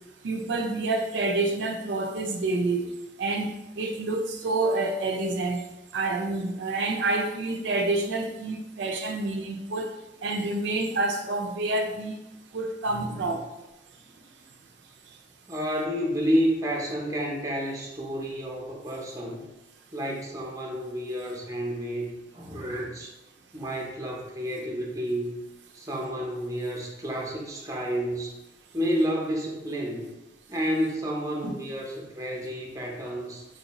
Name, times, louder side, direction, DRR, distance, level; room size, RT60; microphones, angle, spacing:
voice 1, 0.2-2.8 3.2-5.6 5.9-10.0 10.2-12.2 12.5-13.4 31.4-31.5, right 2 dB, 85° right, 3 dB, 0.4 m, -28 dB
voice 2, 12.9-13.4 15.5-19.4 19.9-23.1 23.5-25.4 25.7-28.4 28.7-30.1 30.5-33.4, equal, 20° right, -2 dB, 0.6 m, -30 dB
4.2 x 2.6 x 2.9 m, 0.99 s
head